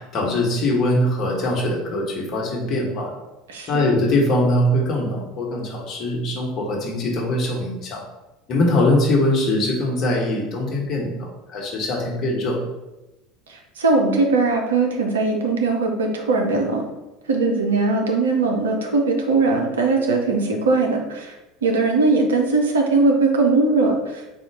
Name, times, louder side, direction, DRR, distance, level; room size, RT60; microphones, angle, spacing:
voice 1, 0.0-3.1 3.7-8.0 8.5-12.6, left 1 dB, 40° left, -1 dB, 1.1 m, -22 dB
voice 2, 3.5-3.9 13.5-16.8 17.3-21.3 21.6-24.2, right 3 dB, 70° right, 2 dB, 0.6 m, -20 dB
4.2 x 2.4 x 4.6 m, 1.0 s
figure-of-eight pair, 70°, 0 cm